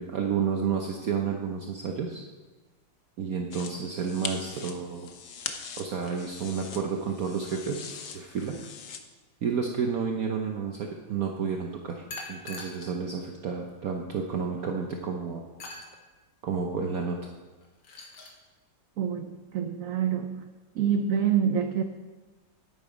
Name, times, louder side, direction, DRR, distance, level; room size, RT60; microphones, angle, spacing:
voice 1, 0.0-2.2 3.2-5.1 5.8-8.6 9.4-15.4 16.4-17.3, right 6 dB, 60° right, 2 dB, 1.1 m, -31 dB
sound 1, 3.5-9.0, left 6 dB, 55° left, 0.9 m, -41 dB
sound 2, 7.8-9.0 12.1-13.0 13.7-13.8 15.6-16.0 17.6-18.4, left 2 dB, 85° left, 2.2 m, -43 dB
voice 2, 19.0-20.4 20.8-21.8, right 8 dB, 80° right, 8 dB, 0.7 m, -26 dB
10.0 x 8.7 x 5.1 m, 1.2 s
omnidirectional pair, 2.0 m